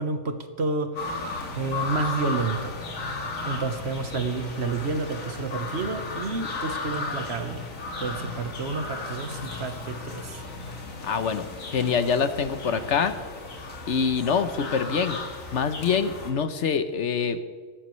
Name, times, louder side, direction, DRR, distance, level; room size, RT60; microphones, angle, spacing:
voice 1, 0.0-2.8 3.4-7.6 8.0-10.4, right 4 dB, 55° right, 7 dB, 1.3 m, -30 dB
sound 1, 0.9-16.3, left 3 dB, 85° left, 2.2 m, -35 dB
voice 2, 11.0-11.5 11.7-13.1 13.9-15.2 15.5-17.4, left 6 dB, 65° left, 10 dB, 1.1 m, -25 dB
17.5 x 14.5 x 3.2 m, 1.5 s
omnidirectional pair, 1.4 m